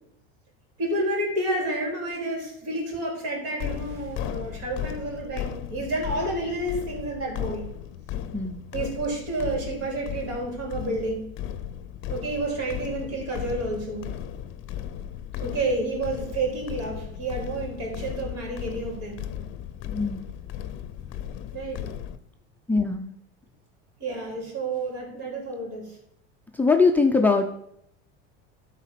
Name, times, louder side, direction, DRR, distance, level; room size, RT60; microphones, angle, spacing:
voice 1, 0.8-7.6 8.7-11.3 12.1-14.1 15.4-19.2 21.5-21.9 24.0-26.0, right 2 dB, 60° right, 0 dB, 4.2 m, -30 dB
sound 1, 3.6-22.2, left 10 dB, 45° left, 0.7 m, -36 dB
voice 2, 19.9-20.2 22.7-23.1 26.5-27.5, left 4 dB, 5° left, 4 dB, 0.6 m, -21 dB
12.5 x 4.1 x 5.8 m, 0.74 s
supercardioid pair, 125°, 29 cm